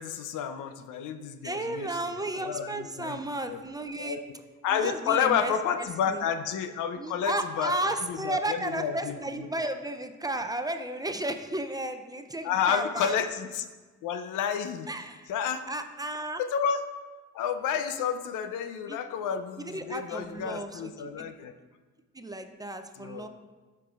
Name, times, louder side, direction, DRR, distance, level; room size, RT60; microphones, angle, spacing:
voice 1, 0.0-2.0 2.3-3.2 3.5-3.6 4.0-4.2 4.6-7.7 8.1-9.5 12.4-13.7 14.0-14.9 15.3-15.6 16.4-16.8 17.3-21.5 23.0-23.3, left 8 dB, 85° left, 9 dB, 0.6 m, -30 dB
voice 2, 1.4-4.2 4.7-6.2 7.0-13.1 14.9-15.3 15.7-16.4 18.9-19.0 19.7-21.3 22.1-23.3, right 1 dB, 15° right, 7 dB, 0.5 m, -33 dB
13.0 x 4.7 x 2.4 m, 1.3 s
cardioid pair, 90°, 30 cm